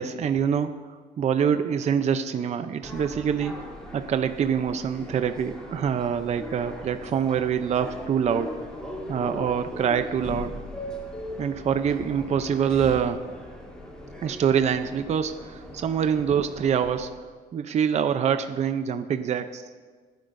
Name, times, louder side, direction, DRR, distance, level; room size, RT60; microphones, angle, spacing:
voice 1, 0.0-3.6 3.9-8.5 9.1-10.6 11.4-13.2 14.2-17.1 17.5-19.7, right 7 dB, 40° right, 9 dB, 0.6 m, -25 dB
sound 1, 2.8-17.1, left 1 dB, 5° left, 3.2 m, -39 dB
27.0 x 10.5 x 2.6 m, 1.5 s
cardioid pair, 110°, 17 cm